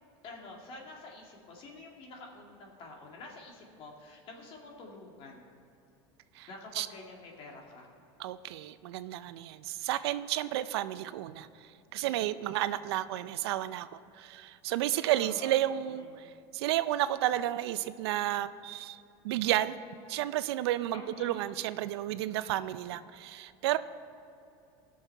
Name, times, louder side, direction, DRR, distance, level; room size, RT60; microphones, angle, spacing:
voice 1, 0.2-5.5 6.5-7.9 15.2-16.1 20.9-21.4, left 2 dB, 45° left, 0 dB, 2.1 m, -48 dB
voice 2, 8.2-11.5 11.9-13.9 14.2-16.3 16.5-19.8 20.1-23.8, right 14 dB, 85° right, 14 dB, 0.5 m, -32 dB
17.0 x 6.4 x 4.5 m, 2.7 s
supercardioid pair, 140°, 13 cm